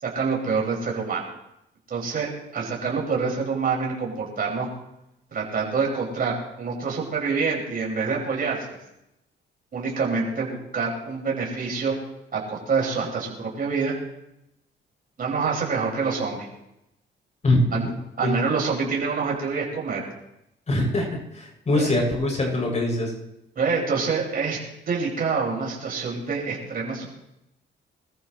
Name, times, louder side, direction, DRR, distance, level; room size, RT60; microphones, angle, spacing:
voice 1, 0.0-1.2 1.9-4.7 5.3-8.8 9.7-11.9 12.3-13.9 15.2-16.5 17.7-17.9 18.2-20.0 21.7-21.9 23.6-24.6 24.9-27.1, right 5 dB, 45° right, -3 dB, 5.8 m, -26 dB
voice 2, 20.7-21.1 21.3-23.1, left 1 dB, 35° left, -1 dB, 7.3 m, -22 dB
24.0 x 14.5 x 3.2 m, 0.86 s
cardioid pair, 90°, 20 cm